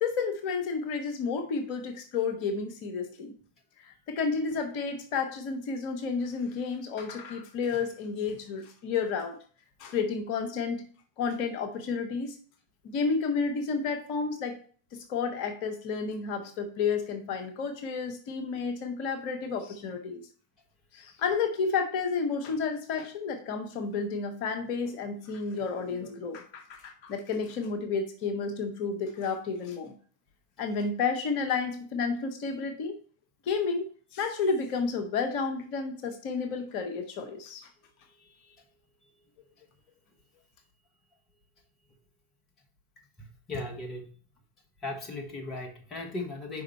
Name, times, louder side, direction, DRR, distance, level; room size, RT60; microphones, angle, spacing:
voice 1, 0.0-3.3 3.8-9.4 9.8-10.8 11.2-12.4 12.8-14.6 14.9-20.2 20.9-29.9 30.6-33.0 33.5-37.7, left 5 dB, 45° left, 6 dB, 1.0 m, -31 dB
voice 2, 38.1-38.6 43.2-44.1 44.8-46.6, left 2 dB, 25° left, 1 dB, 1.2 m, -38 dB
5.1 x 4.9 x 4.3 m, 0.43 s
figure-of-eight pair, 90°, 0 cm